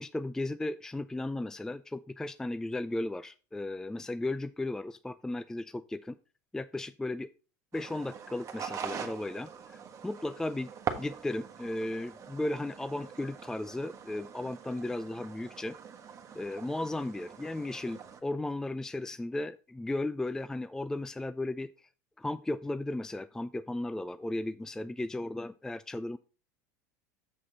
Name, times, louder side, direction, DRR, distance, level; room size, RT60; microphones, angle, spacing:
voice 1, 0.0-6.2 6.5-7.3 7.7-10.7 11.0-15.8 16.4-21.9 22.2-26.2, left 2 dB, 5° left, 13 dB, 0.3 m, -35 dB
sound 1, 7.7-18.2, right 7 dB, 35° right, 1.4 m, -43 dB
7.4 x 6.3 x 4.1 m, 0.35 s
supercardioid pair, 100°, 9 cm